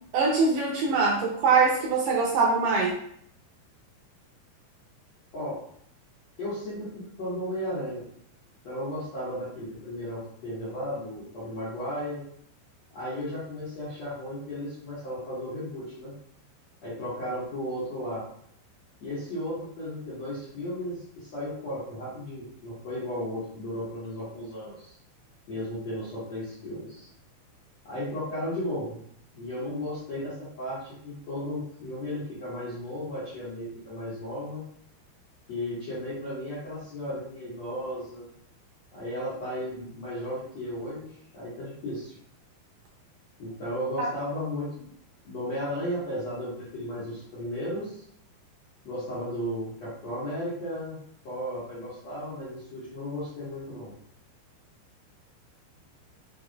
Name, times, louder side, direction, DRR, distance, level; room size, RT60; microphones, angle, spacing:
voice 1, 0.1-2.9 44.0-44.1, right 4 dB, 80° right, -3 dB, 2.5 m, -23 dB
voice 2, 6.4-8.1 8.6-12.2 12.9-16.1 16.8-18.2 19.0-24.9 25.5-27.1 27.8-29.0 29.3-34.6 35.5-38.2 38.9-41.1 41.3-42.1 43.4-44.8 45.2-48.0 48.8-53.9, equal, 55° left, -11 dB, 2.0 m, -35 dB
6.3 x 3.4 x 2.4 m, 0.65 s
omnidirectional pair, 5.1 m